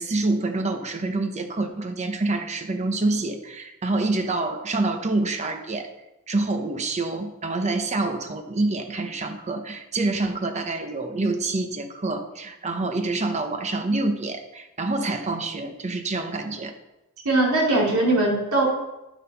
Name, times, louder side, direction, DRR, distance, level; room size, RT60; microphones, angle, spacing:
voice 1, 0.0-5.9 6.3-16.7, right 2 dB, 30° right, 6 dB, 0.9 m, -27 dB
voice 2, 17.2-18.6, right 2 dB, 85° right, -3 dB, 3.1 m, -20 dB
10.5 x 5.9 x 5.7 m, 0.96 s
head